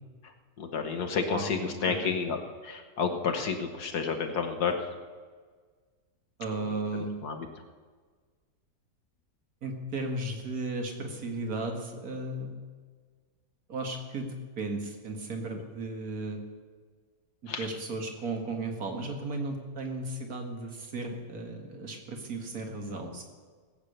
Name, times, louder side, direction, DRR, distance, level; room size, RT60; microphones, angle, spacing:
voice 1, 0.6-2.4 2.6-4.9 7.2-7.5 17.5-17.7, left 5 dB, 75° left, 5 dB, 1.7 m, -30 dB
voice 2, 1.3-2.1 6.4-7.1 9.6-12.5 13.7-16.4 17.4-23.2, right 2 dB, 65° right, 3 dB, 2.4 m, -35 dB
18.5 x 8.6 x 6.7 m, 1.5 s
omnidirectional pair, 1.7 m